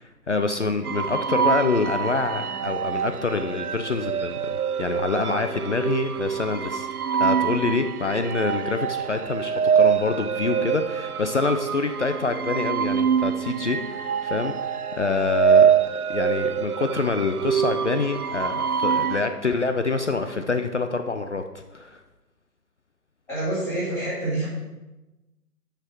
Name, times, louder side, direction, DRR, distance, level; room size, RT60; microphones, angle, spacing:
voice 1, 0.0-6.9 7.2-15.8 16.1-22.0, left 4 dB, 50° left, 7 dB, 0.5 m, -26 dB
sound 1, 0.8-19.2, right 7 dB, 70° right, 0.5 m, -25 dB
voice 2, 23.3-24.4, right 1 dB, 5° left, -11 dB, 2.1 m, -27 dB
6.6 x 5.8 x 6.1 m, 1.1 s
figure-of-eight pair, 150°, 47 cm